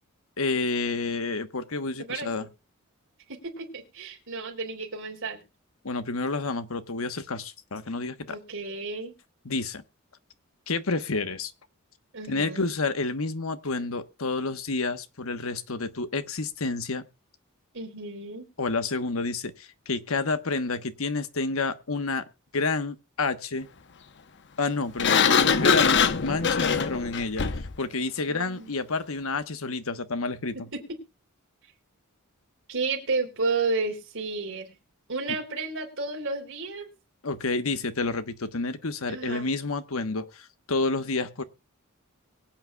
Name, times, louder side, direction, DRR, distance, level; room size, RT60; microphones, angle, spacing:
voice 1, 0.4-2.5 5.8-8.4 9.4-9.8 10.7-11.5 12.3-17.0 18.6-22.2 22.5-23.7 24.6-30.7 37.2-41.4, left 3 dB, 70° left, 1.2 m, -29 dB
voice 2, 2.0-2.5 3.3-5.4 8.3-9.1 12.1-12.6 17.7-18.4 28.3-28.7 30.5-30.8 32.7-34.7 35.1-36.9 39.1-39.5, right 3 dB, 60° right, 3.7 m, -32 dB
Sliding door, 25.0-27.8, left 6 dB, 55° left, 0.9 m, -22 dB
23.0 x 8.8 x 2.3 m
head